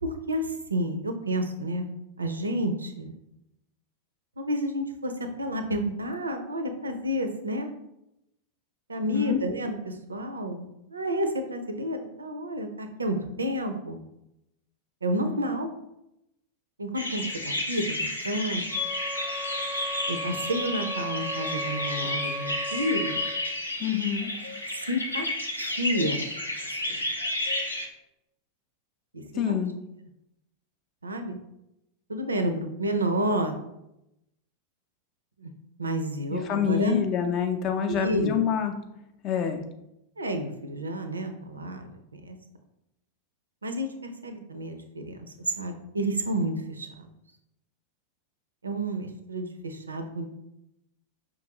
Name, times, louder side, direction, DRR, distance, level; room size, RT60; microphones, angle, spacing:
voice 1, 0.0-1.8 2.2-3.1 4.4-5.1 5.4-7.7 8.9-14.0 15.0-15.7 16.8-18.6 20.1-23.2 24.7-25.3 25.6-26.2 26.7-27.0 29.1-29.6 31.0-31.4 32.1-33.6 35.4-35.5 35.8-37.0 37.8-38.4 40.2-41.9 42.1-42.4 43.6-45.3 45.6-47.1 48.6-50.3, right 1 dB, 75° right, 7 dB, 0.4 m, -30 dB
sound 1, 16.9-27.9, left 1 dB, 85° left, 0.5 m, -31 dB
sound 2, 18.7-23.5, left 1 dB, 10° right, 0.6 m, -36 dB
voice 2, 23.8-24.3 29.4-29.7 36.3-38.7 39.2-39.6, left 8 dB, 35° left, 6 dB, 0.5 m, -26 dB
5.3 x 2.5 x 2.9 m, 0.86 s
figure-of-eight pair, 90°, 0 cm